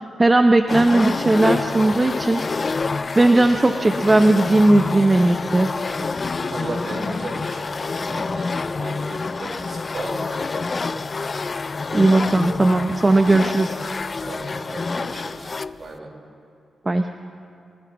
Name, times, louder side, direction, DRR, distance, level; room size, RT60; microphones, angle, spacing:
voice 1, 0.2-2.4 3.2-5.7 11.9-13.8 16.9-17.1, right 2 dB, 25° right, 6 dB, 0.8 m, -17 dB
sound 1, 0.7-15.8, left 4 dB, 45° left, 0.4 m, -27 dB
voice 2, 6.4-11.0 14.2-16.1, right 2 dB, 50° right, -1 dB, 4.6 m, -35 dB
26.5 x 16.5 x 3.1 m, 2.7 s
cardioid pair, 55°, 0 cm